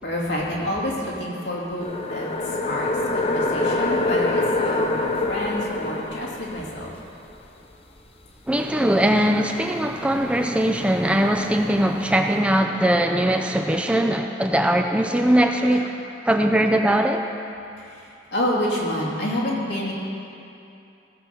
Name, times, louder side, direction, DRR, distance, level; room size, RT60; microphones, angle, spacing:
voice 1, 0.0-7.0 15.7-15.9 17.8-19.9, left 1 dB, 65° left, -5 dB, 2.7 m, -28 dB
sound 1, 1.8-6.9 9.0-12.4, left 2 dB, 30° left, 0.7 m, -27 dB
voice 2, 8.5-15.9 16.2-17.2, right 1 dB, 5° right, 3 dB, 0.4 m, -20 dB
16.5 x 6.0 x 6.9 m, 2.7 s
head